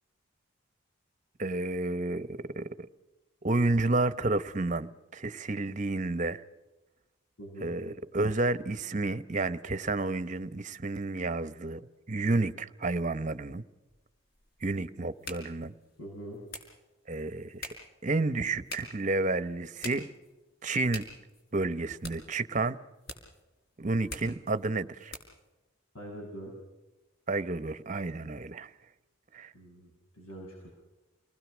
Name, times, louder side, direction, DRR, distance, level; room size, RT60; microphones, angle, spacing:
voice 1, 1.4-2.8 3.4-6.4 7.6-11.8 12.1-13.6 14.6-15.7 17.1-17.7 18.0-20.1 20.6-21.1 21.5-22.8 23.8-25.1 27.3-28.7 29.3-29.5, right 2 dB, 35° right, 0.9 m, -30 dB
voice 2, 7.4-7.7 16.0-16.4 25.9-26.5 29.5-30.7, right 1 dB, 75° left, 7.5 m, -44 dB
sound 1, 13.9-25.5, left 2 dB, 50° left, 5.2 m, -47 dB
29.0 x 20.0 x 6.2 m
head